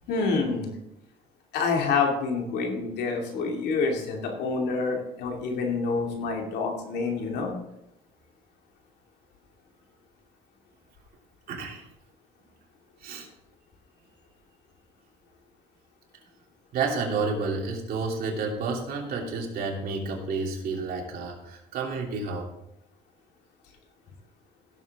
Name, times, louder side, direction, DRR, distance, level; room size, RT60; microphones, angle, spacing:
voice 1, 0.1-0.7 1.5-7.5, left 4 dB, 75° left, 1 dB, 2.6 m, -27 dB
voice 2, 11.5-11.9 13.0-13.3 16.7-22.5, right 4 dB, 65° right, 0 dB, 3.0 m, -30 dB
16.5 x 7.5 x 3.6 m, 0.84 s
cardioid pair, 110°, 17 cm